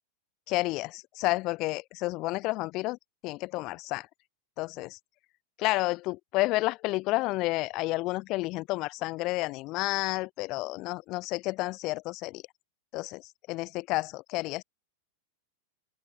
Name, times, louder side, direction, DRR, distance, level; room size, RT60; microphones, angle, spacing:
voice 1, 0.5-3.0 3.2-4.1 4.6-5.0 5.6-12.4 12.9-14.6, left 21 dB, 40° left, 2.3 m, -30 dB
figure-of-eight pair, 90°, 0 cm